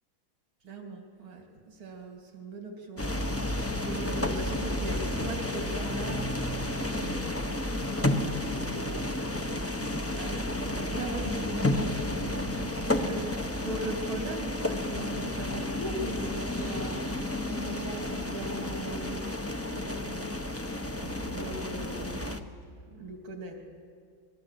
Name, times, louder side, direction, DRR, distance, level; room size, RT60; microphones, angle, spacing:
voice 1, 0.6-7.5 8.0-12.2 12.6-19.3 19.7-22.3 22.9-23.6, right 2 dB, 80° right, 3 dB, 3.5 m, -40 dB
sound 1, 3.0-22.4, left 1 dB, 10° left, 0.8 m, -31 dB
27.5 x 21.5 x 8.2 m, 2.2 s
omnidirectional pair, 2.2 m